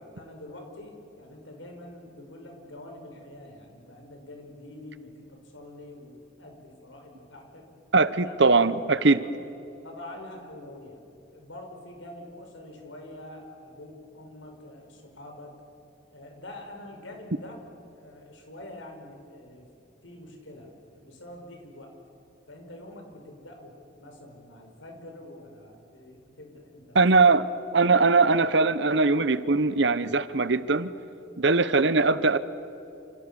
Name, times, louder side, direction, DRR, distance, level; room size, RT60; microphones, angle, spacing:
voice 1, 0.1-7.7 8.2-8.3 8.6-8.7 9.2-9.3 9.8-11.0 11.3-15.5 16.1-17.6 17.9-19.7 20.0-21.9 22.5-27.0, left 1 dB, 75° left, 3 dB, 5.7 m, -45 dB
voice 2, 7.9-9.2 26.9-27.5 27.7-30.9 31.4-32.4, right 3 dB, 60° right, 14 dB, 1.0 m, -21 dB
29.0 x 28.5 x 7.1 m, 2.8 s
head